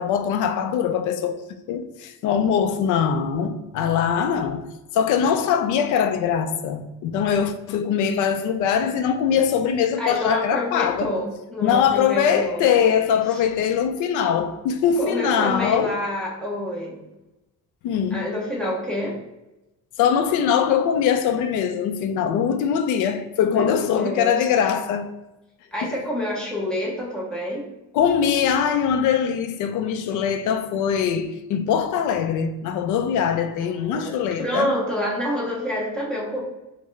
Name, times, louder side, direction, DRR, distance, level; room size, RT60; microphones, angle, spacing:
voice 1, 0.0-1.4 1.7-4.7 4.9-11.1 11.6-15.9 17.8-18.2 20.0-25.1 27.9-34.7, left 8 dB, 55° left, 0.4 m, -22 dB
voice 2, 10.0-12.7 13.3-13.4 15.0-17.0 18.1-19.2 23.4-24.6 25.7-27.7 33.7-36.4, left 1 dB, ahead, 0.6 m, -28 dB
5.6 x 2.1 x 3.1 m
cardioid pair, 175°, 36 cm